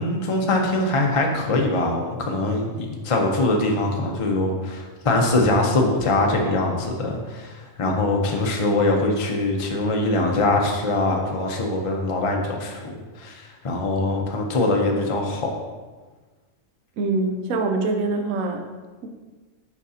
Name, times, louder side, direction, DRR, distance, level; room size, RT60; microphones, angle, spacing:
voice 1, 0.0-15.5, left 2 dB, 35° left, 1 dB, 0.5 m, -23 dB
voice 2, 17.0-18.6, right 3 dB, 75° right, 5 dB, 1.0 m, -24 dB
7.1 x 5.0 x 2.8 m, 1.3 s
omnidirectional pair, 1.5 m